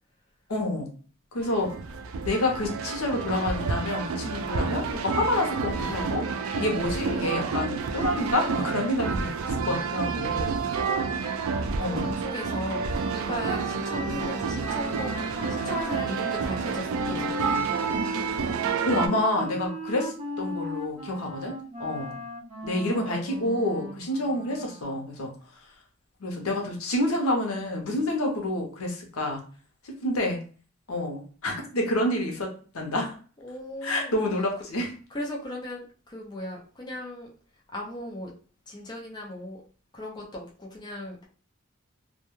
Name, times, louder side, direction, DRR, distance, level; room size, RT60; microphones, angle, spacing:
voice 1, 0.5-0.9 1.3-1.7 2.2-6.2 6.6-10.6 11.8-12.2 18.9-21.5 21.8-22.1 22.6-25.3 26.2-29.4 29.8-30.4 30.9-32.5 32.7-33.1 33.8-34.9, left 1 dB, 85° left, 2 dB, 0.7 m, -28 dB
sound 1, 1.4-19.1, right 5 dB, 75° right, 0.3 m, -29 dB
voice 2, 11.8-15.1 15.5-17.6 22.9-23.5 33.4-34.2 35.1-37.3 37.7-38.3 38.7-39.6 39.9-41.2, left 1 dB, 20° left, -2 dB, 0.5 m, -37 dB
Wind instrument woodwind instrument, 13.0-25.1, equal, 30° right, 0.7 m, -38 dB
2.2 x 2.2 x 3.0 m, 0.40 s
head